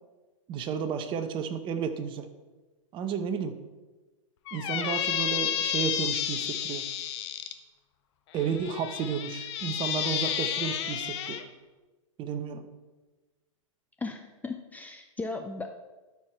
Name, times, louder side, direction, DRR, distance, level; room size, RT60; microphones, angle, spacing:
voice 1, 0.5-2.3 2.9-3.6 4.5-6.8 8.3-11.4 12.2-12.7, right 7 dB, 30° right, 9 dB, 0.9 m, -32 dB
Squeak, 4.5-7.5 8.4-11.4, left 10 dB, 55° left, 0.9 m, -31 dB
voice 2, 14.0-15.7, left 3 dB, 10° left, 5 dB, 0.5 m, -36 dB
13.0 x 4.8 x 4.5 m, 1.2 s
hypercardioid pair, 115°, 17 cm